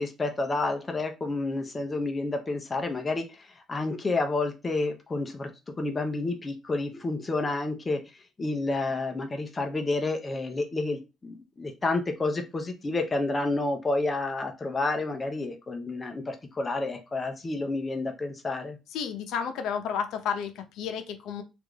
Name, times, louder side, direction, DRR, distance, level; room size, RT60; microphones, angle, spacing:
voice 1, 0.0-5.5 5.8-8.0 8.4-18.8, left 2 dB, 15° left, 4 dB, 0.5 m, -30 dB
voice 2, 18.9-21.4, left 7 dB, 80° left, 7 dB, 0.6 m, -31 dB
3.3 x 2.5 x 3.3 m, 0.26 s
cardioid pair, 180°, 0 cm